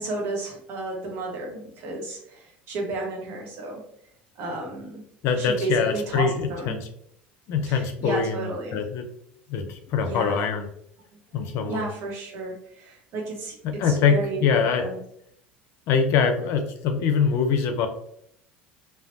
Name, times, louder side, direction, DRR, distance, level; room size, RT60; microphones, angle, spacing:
voice 1, 0.0-3.8 4.3-5.0 5.3-6.8 7.7-8.8 10.0-10.4 11.3-15.0, right 3 dB, 50° right, -1 dB, 1.1 m, -33 dB
voice 2, 5.2-6.9 7.5-9.1 9.5-10.7 11.3-11.9 13.6-14.8 15.9-17.9, left 6 dB, 50° left, 6 dB, 0.5 m, -24 dB
3.3 x 2.2 x 2.5 m, 0.71 s
figure-of-eight pair, 70°, 6 cm